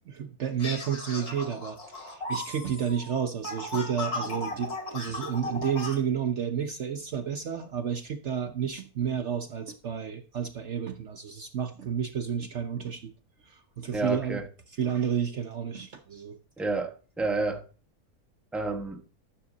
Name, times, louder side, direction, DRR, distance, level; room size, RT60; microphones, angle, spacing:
voice 1, 0.0-13.1 13.5-14.4 14.8-16.4, right 8 dB, 55° right, 1.0 m, -31 dB
sound 1, 0.6-6.0, left 2 dB, 80° left, 3.1 m, -36 dB
voice 2, 13.9-14.5 16.6-17.6 18.5-19.0, right 3 dB, ahead, 1.1 m, -30 dB
13.0 x 7.3 x 3.9 m
omnidirectional pair, 1.6 m